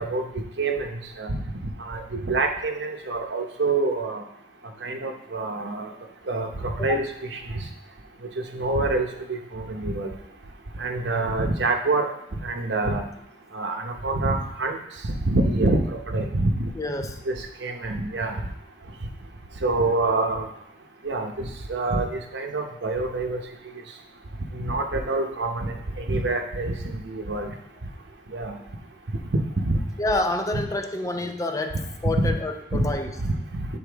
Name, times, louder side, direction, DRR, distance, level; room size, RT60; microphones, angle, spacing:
voice 1, 0.0-1.4 1.9-4.2 4.8-5.9 6.3-7.6 8.5-10.1 10.8-12.1 12.4-13.0 13.5-14.8 15.2-16.7 17.3-17.4 17.6-18.4 19.6-20.5 21.0-23.4 24.5-27.5 28.3-28.6 29.3-29.8 32.2-32.3 32.7-32.9 33.2-33.7, right 2 dB, 80° right, 4 dB, 0.8 m, -26 dB
voice 2, 16.8-17.2 30.0-33.1, left 2 dB, 20° left, 6 dB, 0.4 m, -28 dB
8.5 x 4.3 x 3.4 m, 0.78 s
head